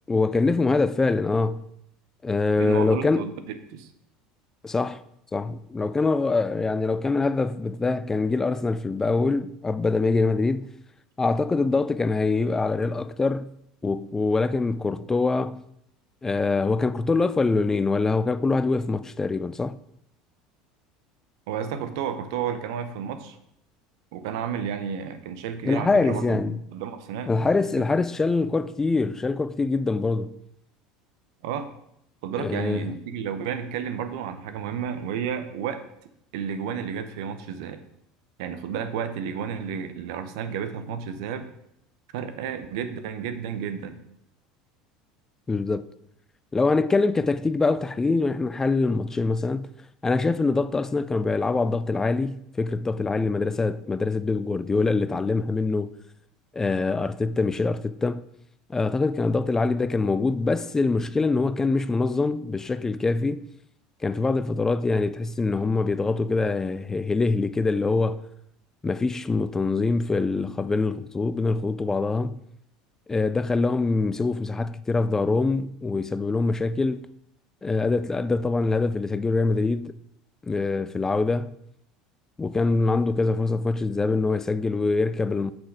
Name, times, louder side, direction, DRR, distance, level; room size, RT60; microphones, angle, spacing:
voice 1, 0.1-1.6 2.2-3.3 4.6-5.0 5.3-10.7 11.2-13.5 13.8-15.6 16.2-19.8 25.6-26.6 27.3-30.4 32.4-32.8 45.5-45.9 46.5-49.7 50.0-55.9 56.5-58.2 58.7-63.5 64.0-68.2 68.8-72.4 73.1-77.1 77.6-80.0 80.4-81.6 82.4-85.5, left 3 dB, 15° left, 0.4 m, -24 dB
voice 2, 2.6-3.9 21.5-23.4 24.1-27.3 27.8-27.9 31.4-31.7 32.2-35.8 36.3-37.8 38.4-41.5 42.1-44.0, right 7 dB, 75° right, 0.8 m, -32 dB
6.2 x 6.1 x 4.8 m
hypercardioid pair, 90°, 3 cm